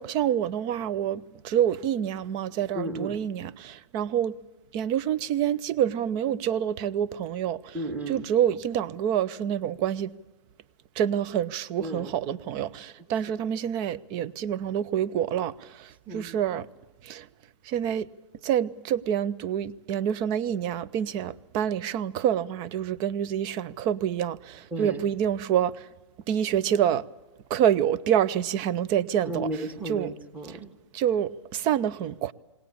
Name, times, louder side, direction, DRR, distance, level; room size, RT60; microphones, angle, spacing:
voice 1, 0.0-4.3 4.7-7.8 8.1-10.1 11.0-16.7 17.0-17.3 17.7-18.1 18.4-25.9 26.3-27.0 27.5-29.5 29.9-30.1 30.5-30.6 30.9-32.3, right 10 dB, 30° right, 0.6 m, -27 dB
voice 2, 2.8-3.2 7.7-8.3 11.8-12.1 16.1-16.3 24.7-25.0 29.2-30.7, right 1 dB, 10° right, 1.7 m, -34 dB
21.5 x 18.5 x 8.6 m
hypercardioid pair, 130°, 16 cm